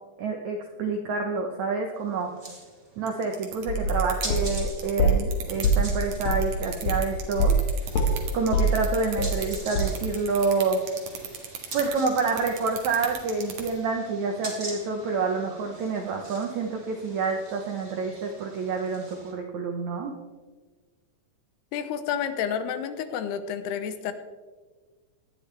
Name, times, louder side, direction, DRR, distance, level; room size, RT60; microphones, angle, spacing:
voice 1, 0.2-2.3 3.0-7.6 8.3-10.8 11.7-20.1, right 4 dB, 75° right, 3 dB, 1.6 m, -28 dB
sound 1, 2.0-19.3, right 1 dB, 15° right, 2.2 m, -44 dB
sound 2, 3.1-13.7, right 8 dB, 55° right, 2.6 m, -35 dB
sound 3, 3.7-5.3 5.6-7.7 7.9-9.5 9.8-9.9, right 1 dB, 60° left, 2.1 m, -24 dB
voice 2, 21.7-24.1, left 8 dB, 80° left, 10 dB, 2.8 m, -30 dB
18.5 x 12.0 x 3.4 m, 1.4 s
omnidirectional pair, 4.7 m